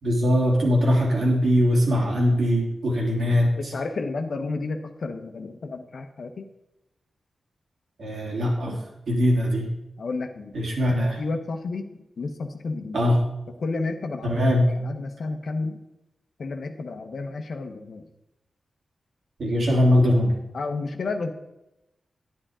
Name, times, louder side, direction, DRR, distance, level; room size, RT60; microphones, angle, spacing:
voice 1, 0.0-3.5 8.0-8.8 9.1-9.7 10.5-11.2 12.9-13.2 14.2-14.7 19.4-20.4, equal, 80° right, -3 dB, 3.3 m, -21 dB
voice 2, 3.6-6.5 10.0-10.5 11.2-13.0 13.5-15.8 16.4-18.1 20.5-21.3, left 3 dB, 70° left, 6 dB, 1.1 m, -31 dB
10.5 x 10.0 x 3.7 m, 0.90 s
wide cardioid pair, 95°, 0 cm